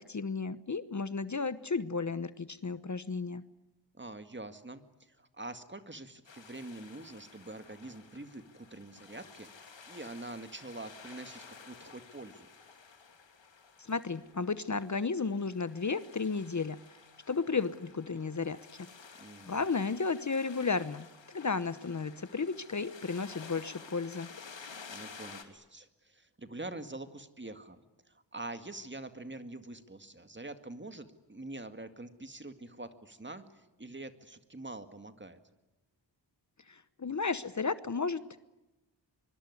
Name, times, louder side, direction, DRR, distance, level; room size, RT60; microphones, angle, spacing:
voice 1, 0.1-3.4 13.9-16.8 17.3-18.9 19.5-24.3 36.7-38.2, left 4 dB, 40° left, 14 dB, 1.0 m, -33 dB
voice 2, 3.9-12.5 19.2-19.6 24.9-35.4, right 2 dB, 25° right, 9 dB, 2.1 m, -45 dB
sound 1, 6.2-25.4, left 5 dB, 85° left, 2.8 m, -53 dB
24.0 x 23.5 x 9.7 m, 1.0 s
wide cardioid pair, 80°, 43 cm